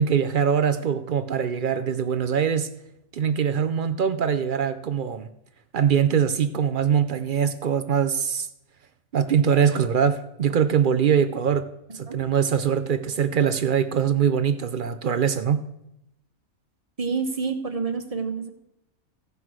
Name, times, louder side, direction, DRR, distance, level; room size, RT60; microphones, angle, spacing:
voice 1, 0.0-2.7 3.1-5.3 5.7-8.5 9.1-11.7 11.9-15.6, right 7 dB, 60° right, 12 dB, 0.5 m, -22 dB
voice 2, 17.0-18.5, right 5 dB, 30° right, 7 dB, 0.9 m, -28 dB
16.0 x 6.0 x 4.7 m, 0.84 s
omnidirectional pair, 1.5 m